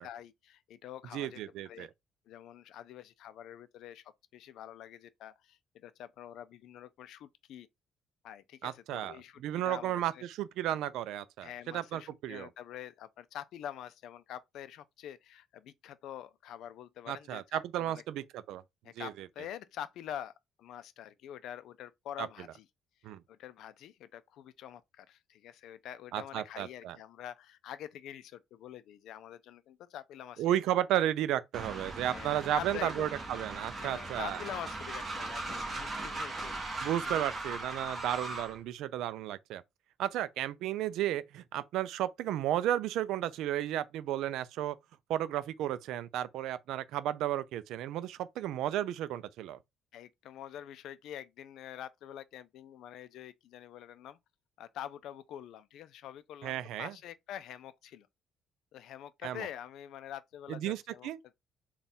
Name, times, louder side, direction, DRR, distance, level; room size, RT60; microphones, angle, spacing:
voice 1, 0.0-1.4 1.6-1.9 2.3-7.7 8.2-10.2 11.4-18.0 18.8-20.3 20.6-22.7 23.3-30.4 32.0-33.1 33.8-36.6 37.0-37.2 49.9-54.2 54.6-58.1 58.7-61.1, left 10 dB, 75° left, 0.4 m, -46 dB
voice 2, 1.1-1.9 8.6-12.5 17.1-18.6 19.0-19.3 22.2-22.3 23.0-23.2 26.1-27.0 30.4-34.4 36.8-39.6 40.0-44.8 45.1-49.6 56.4-57.0 59.2-59.5 60.5-61.2, right 12 dB, 85° right, 0.4 m, -33 dB
Train, 31.5-38.6, right 2 dB, 30° right, 1.1 m, -39 dB
3.6 x 2.3 x 4.1 m
cardioid pair, 140°, 0 cm